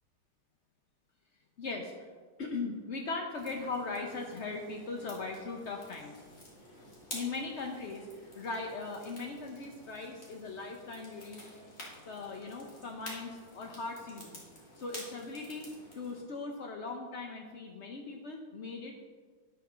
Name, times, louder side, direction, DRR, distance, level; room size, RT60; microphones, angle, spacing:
voice 1, 1.6-2.1 2.4-6.2 7.1-11.4 12.1-14.4 14.8-19.1, left 3 dB, 60° left, 1 dB, 0.7 m, -39 dB
sound 1, 3.3-16.2, left 1 dB, 40° left, 2.7 m, -50 dB
10.0 x 6.0 x 6.1 m, 1.6 s
omnidirectional pair, 2.2 m